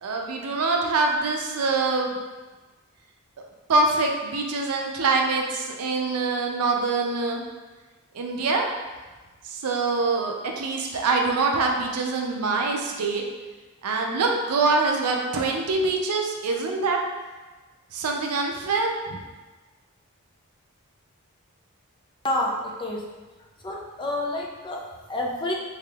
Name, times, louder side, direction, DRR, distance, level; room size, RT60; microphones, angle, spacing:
voice 1, 0.0-2.2 3.7-7.4 8.1-8.6 9.4-13.2 13.8-17.0 17.9-19.2, right 3 dB, 85° right, 1 dB, 0.5 m, -24 dB
voice 2, 22.2-23.1 23.6-25.5, left 1 dB, 20° left, -1 dB, 0.4 m, -29 dB
3.6 x 3.4 x 2.3 m, 1.2 s
head